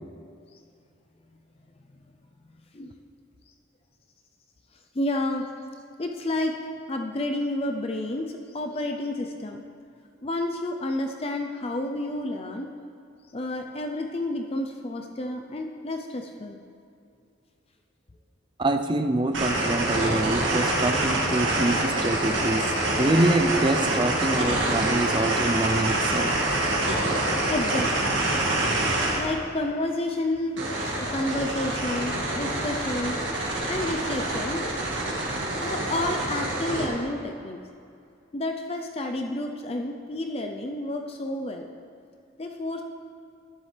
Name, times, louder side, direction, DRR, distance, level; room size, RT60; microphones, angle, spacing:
voice 1, 4.9-5.5 6.0-6.5 6.9-9.6 10.2-12.7 13.3-16.6 27.5-28.2 29.1-34.7 35.6-37.6 38.3-41.7 42.4-42.8, left 1 dB, 30° left, 4 dB, 0.5 m, -30 dB
voice 2, 18.6-22.6 23.0-26.3, right 1 dB, 25° right, 7 dB, 0.5 m, -25 dB
sound 1, 19.3-29.2 30.6-36.9, right 2 dB, 75° right, 2.0 m, -26 dB
12.5 x 10.0 x 3.3 m, 2.5 s
head